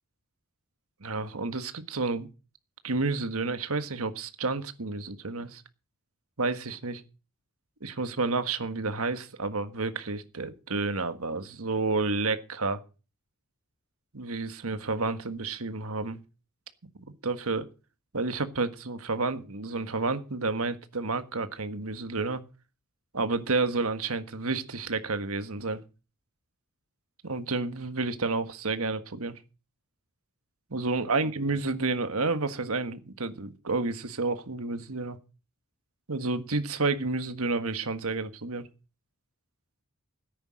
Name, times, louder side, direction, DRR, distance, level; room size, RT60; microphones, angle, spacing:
voice 1, 1.0-2.3 2.8-5.6 6.4-7.0 7.8-12.8 14.1-16.2 17.0-17.7 18.1-22.4 23.1-25.8 27.2-29.4 30.7-35.2 36.1-38.7, right 3 dB, 70° right, 10 dB, 1.6 m, -30 dB
13.5 x 9.9 x 6.3 m, 0.34 s
head